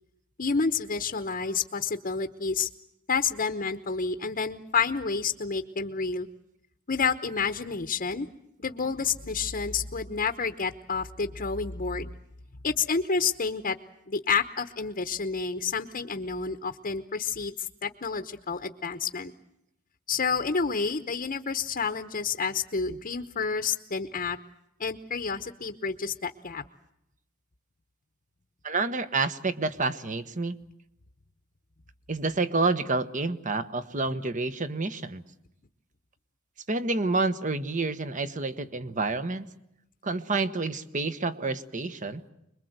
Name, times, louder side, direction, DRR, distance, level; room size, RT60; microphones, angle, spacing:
voice 1, 0.4-2.7 3.1-6.3 6.9-8.3 8.6-12.1 12.6-13.8 14.1-19.3 20.1-24.4 24.8-26.6, left 5 dB, 40° left, 8 dB, 1.0 m, -29 dB
voice 2, 28.6-30.6 32.1-35.2 36.7-39.5 40.0-42.2, right 3 dB, 40° right, 11 dB, 1.3 m, -28 dB
26.0 x 22.0 x 8.0 m, 0.81 s
head